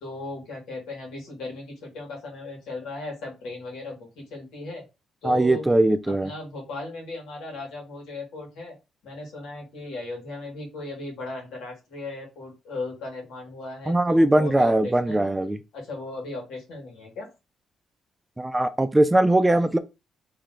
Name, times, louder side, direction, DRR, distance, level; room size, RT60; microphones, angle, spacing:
voice 1, 0.0-4.8 5.2-5.7 6.1-8.7 9.0-15.3 15.7-17.3, left 2 dB, 85° left, 2.1 m, -37 dB
voice 2, 5.2-6.3 13.9-15.6 18.4-19.8, right 1 dB, 15° right, 0.5 m, -20 dB
3.2 x 3.0 x 3.9 m
cardioid pair, 90°, 0 cm